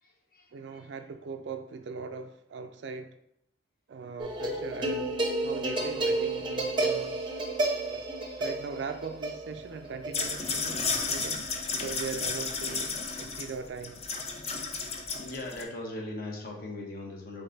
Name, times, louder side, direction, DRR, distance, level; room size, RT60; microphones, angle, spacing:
voice 1, 0.0-0.9 10.6-11.3 15.1-17.4, left 2 dB, 50° left, 1.0 m, -41 dB
voice 2, 0.5-3.1 3.9-7.2 7.9-8.0 8.4-11.4 11.7-14.0, right 5 dB, 80° right, 0.4 m, -40 dB
sound 1, 4.2-11.6, right 2 dB, 25° right, 0.6 m, -31 dB
sound 2, 10.1-15.6, left 4 dB, 35° left, 0.5 m, -33 dB
3.9 x 3.4 x 4.0 m
head